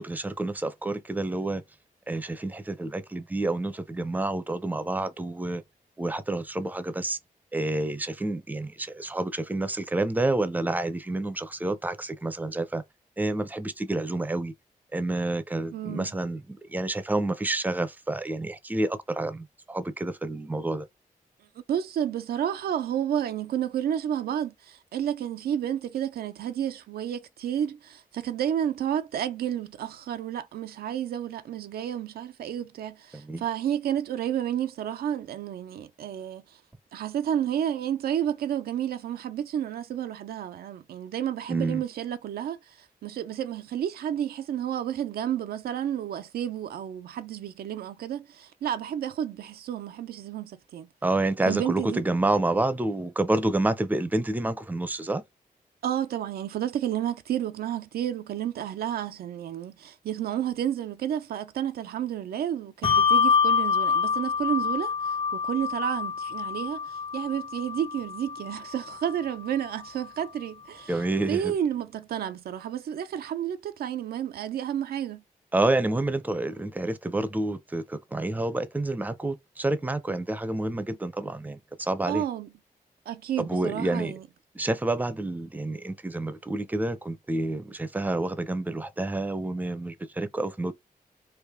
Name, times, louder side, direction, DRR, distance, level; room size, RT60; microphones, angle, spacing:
voice 1, 0.0-1.6 2.1-5.6 6.0-7.2 7.5-12.8 13.2-14.5 14.9-20.9 33.1-33.4 41.5-41.8 51.0-55.2 70.9-71.5 75.5-82.2 83.4-84.1 84.5-90.7, right 2 dB, 10° right, 0.5 m, -29 dB
voice 2, 15.7-16.1 21.7-36.6 36.9-50.9 51.5-52.0 55.8-71.0 71.3-75.2 82.1-82.5 83.1-84.2, right 10 dB, 85° right, 0.4 m, -31 dB
Bell, 62.8-69.7, left 6 dB, 40° left, 0.6 m, -26 dB
3.3 x 2.4 x 3.6 m
cardioid pair, 70°, 15 cm